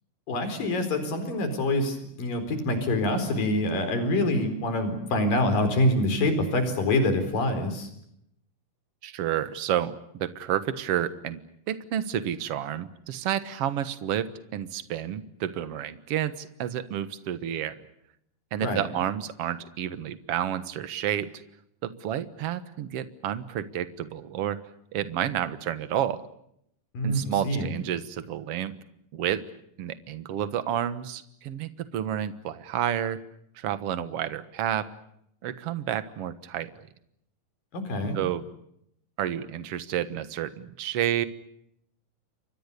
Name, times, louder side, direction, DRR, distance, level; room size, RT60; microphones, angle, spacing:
voice 1, 0.3-7.9 18.6-18.9 26.9-27.7 37.7-38.2, left 1 dB, 80° left, 8 dB, 5.9 m, -26 dB
voice 2, 9.0-11.4 11.7-17.8 18.5-21.3 21.8-24.6 24.9-26.2 27.0-28.7 29.1-29.4 29.8-33.2 33.6-34.9 35.4-36.9 38.1-38.4 39.2-41.2, right 10 dB, 55° right, 12 dB, 2.0 m, -30 dB
29.5 x 24.5 x 6.8 m, 0.75 s
omnidirectional pair, 3.9 m